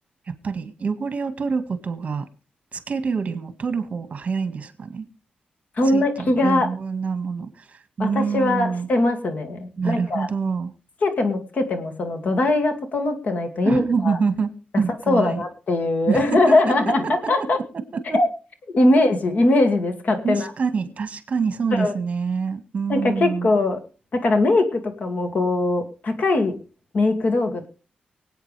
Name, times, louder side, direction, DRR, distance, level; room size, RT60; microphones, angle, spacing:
voice 1, 0.3-2.3 2.7-5.1 5.9-8.9 9.8-10.7 13.6-14.5 14.8-15.4 16.1-16.2 16.5-17.3 17.9-18.2 20.2-23.5, right 5 dB, 45° right, 1.7 m, -26 dB
voice 2, 5.8-6.7 8.0-10.3 11.0-14.2 14.7-17.6 18.1-18.3 18.7-20.5 21.7-21.9 22.9-23.8 24.1-26.6 26.9-27.7, left 2 dB, 55° left, 2.3 m, -21 dB
24.0 x 8.8 x 3.4 m
wide cardioid pair, 115°, 3 cm